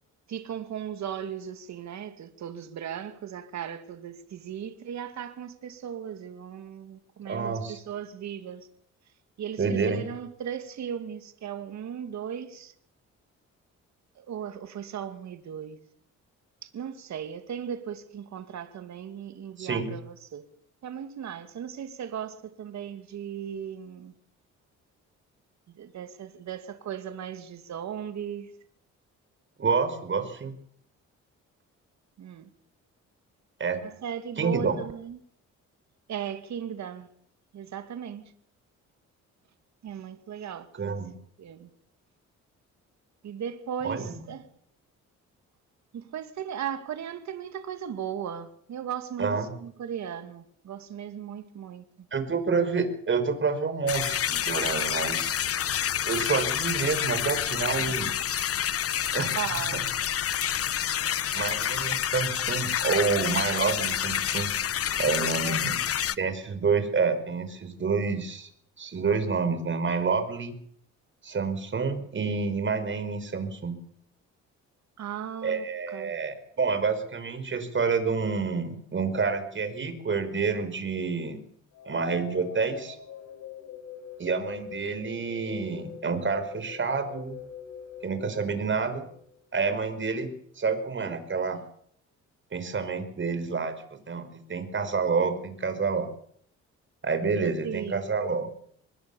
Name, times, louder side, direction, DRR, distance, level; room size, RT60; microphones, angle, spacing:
voice 1, 0.3-8.7 9.4-12.7 14.2-15.8 16.6-20.4 20.8-24.1 25.8-28.5 32.2-32.5 33.8-35.2 36.1-37.1 37.5-38.2 39.8-40.7 41.4-41.7 43.2-44.5 45.9-51.8 59.4-59.9 61.0-61.1 65.2-65.7 75.0-76.2 97.6-98.1, right 8 dB, 65° right, 2.4 m, -37 dB
voice 2, 7.3-7.8 9.6-10.0 19.6-19.9 29.6-30.5 33.6-33.8 34.4-34.8 40.8-41.1 43.8-44.1 49.2-49.5 52.1-55.3 56.0-58.1 59.1-59.3 61.3-64.5 65.0-65.8 66.2-68.5 68.8-70.6 71.2-73.7 75.4-81.4 81.8-83.0 84.2-87.4 88.0-89.1 89.5-91.6 92.5-96.1 97.0-98.5, right 5 dB, 40° right, 5.2 m, -28 dB
sound 1, 53.9-66.1, left 10 dB, 50° left, 0.9 m, -28 dB
sound 2, 81.7-89.7, left 7 dB, 85° left, 7.3 m, -44 dB
25.5 x 20.5 x 7.1 m
cardioid pair, 90°, 30 cm